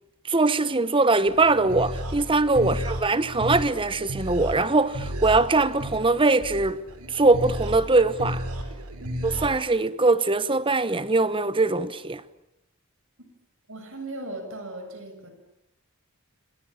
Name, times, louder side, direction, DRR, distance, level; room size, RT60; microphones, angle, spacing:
voice 1, 0.2-6.8 7.1-8.4 9.2-12.2, right 3 dB, 25° right, 1.0 m, -22 dB
sound 1, 1.3-9.5, equal, 85° right, 4.9 m, -33 dB
voice 2, 9.0-9.3 13.7-15.3, right 1 dB, 60° right, 7.2 m, -38 dB
28.5 x 26.0 x 7.3 m
head